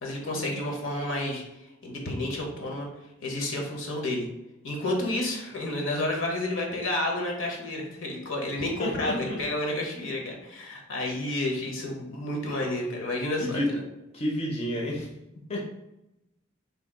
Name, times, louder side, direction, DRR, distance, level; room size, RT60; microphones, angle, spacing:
voice 1, 0.0-1.4 1.8-2.9 3.2-4.3 4.6-13.8, left 1 dB, 70° left, 0 dB, 0.8 m, -30 dB
voice 2, 8.8-9.4 13.4-13.7 14.1-15.1 15.5-15.7, left 1 dB, 30° left, -2 dB, 0.5 m, -30 dB
2.8 x 2.3 x 3.5 m, 0.90 s
head